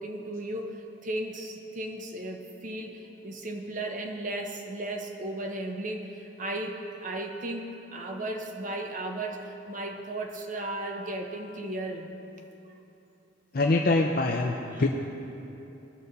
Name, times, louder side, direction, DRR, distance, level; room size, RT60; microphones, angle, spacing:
voice 1, 0.0-12.1 14.7-14.8, right 1 dB, 45° right, 2 dB, 1.0 m, -35 dB
voice 2, 13.5-14.9, left 2 dB, 50° left, 1 dB, 0.6 m, -24 dB
19.5 x 6.9 x 4.0 m, 3.0 s
head